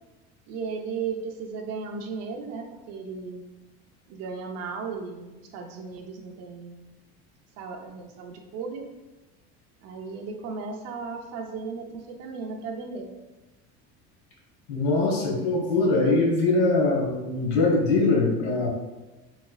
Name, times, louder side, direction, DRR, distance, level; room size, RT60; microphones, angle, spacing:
voice 1, 0.5-3.4 4.1-6.8 7.6-8.8 9.8-13.1, right 5 dB, 50° right, 2 dB, 0.6 m, -35 dB
voice 2, 14.7-18.7, left 3 dB, 85° left, -1 dB, 1.2 m, -22 dB
4.1 x 3.0 x 2.3 m, 1.1 s
cardioid pair, 160°, 32 cm